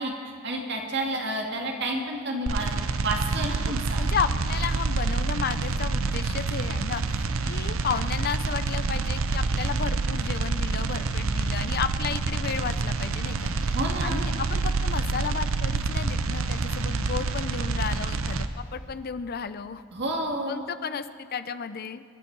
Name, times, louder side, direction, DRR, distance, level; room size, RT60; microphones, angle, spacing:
voice 1, 0.0-4.0 13.7-14.3 19.9-20.7, right 1 dB, 55° right, 1 dB, 2.1 m, -30 dB
sound 1, 2.5-18.5, right 3 dB, 80° right, 0.7 m, -27 dB
voice 2, 3.9-19.8 20.5-22.0, left 6 dB, 50° left, 12 dB, 0.5 m, -33 dB
24.5 x 10.5 x 4.6 m, 2.4 s
head